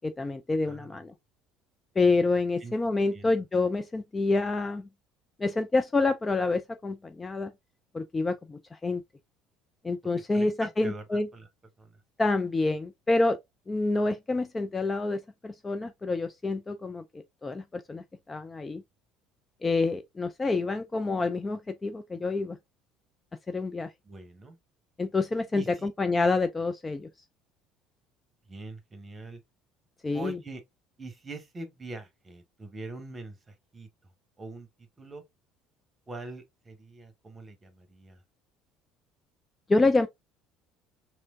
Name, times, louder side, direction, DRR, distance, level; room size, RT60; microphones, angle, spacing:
voice 1, 0.0-1.1 2.0-4.9 5.4-7.5 7.9-9.0 9.8-11.3 12.2-13.4 13.7-18.8 19.6-22.6 23.5-23.9 25.0-27.1 30.0-30.4 39.7-40.1, left 3 dB, 20° left, 0.3 m, -27 dB
voice 2, 0.6-1.0 2.6-2.7 3.1-3.3 10.3-11.0 11.3-11.5 11.8-12.0 24.0-24.6 25.5-25.9 28.5-29.4 30.1-30.6 31.0-33.9 34.4-34.7 35.0-35.2 36.1-38.2, right 3 dB, 25° right, 1.0 m, -43 dB
3.2 x 2.9 x 2.3 m
figure-of-eight pair, 60°, 0 cm